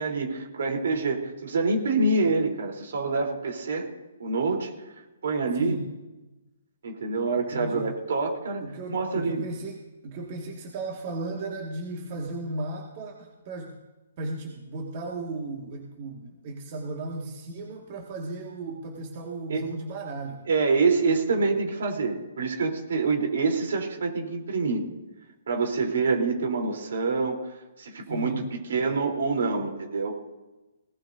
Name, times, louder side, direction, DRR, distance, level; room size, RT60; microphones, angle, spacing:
voice 1, 0.0-3.9 4.2-4.7 5.2-5.8 6.8-8.6 8.9-9.4 19.5-19.7 20.5-24.8 25.5-27.4 27.8-30.2, right 4 dB, 65° right, 2 dB, 3.6 m, -26 dB
voice 2, 5.6-5.9 7.4-7.9 8.6-13.7 14.2-20.4 28.1-28.5, right 2 dB, 40° right, 0 dB, 1.9 m, -35 dB
20.0 x 17.5 x 2.7 m, 1.1 s
hypercardioid pair, 140°, 0 cm